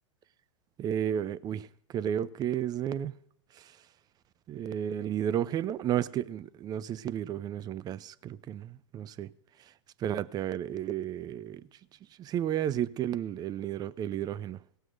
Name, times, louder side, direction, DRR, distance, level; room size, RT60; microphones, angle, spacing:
voice 1, 0.8-1.7 1.9-3.2 3.6-3.7 4.5-9.3 10.0-11.7 12.2-14.6, right 10 dB, 25° right, 0.5 m, -32 dB
17.5 x 6.4 x 6.4 m
hypercardioid pair, 110°, 16 cm